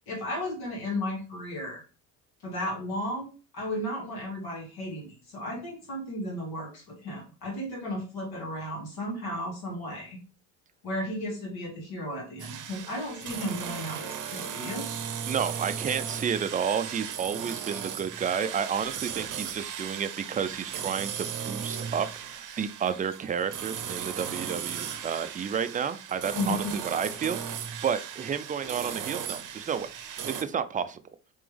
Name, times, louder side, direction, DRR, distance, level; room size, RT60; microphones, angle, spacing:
voice 1, 0.1-1.8 2.4-10.2 10.8-14.9 26.3-26.7, left 1 dB, 60° left, -1 dB, 2.3 m, -34 dB
sound 1, 12.4-30.4, right 8 dB, 50° right, 0.8 m, -36 dB
voice 2, 15.3-29.9 30.2-31.0, right 7 dB, 20° right, 11 dB, 0.4 m, -31 dB
3.5 x 3.4 x 3.4 m, 0.34 s
supercardioid pair, 80°, 41 cm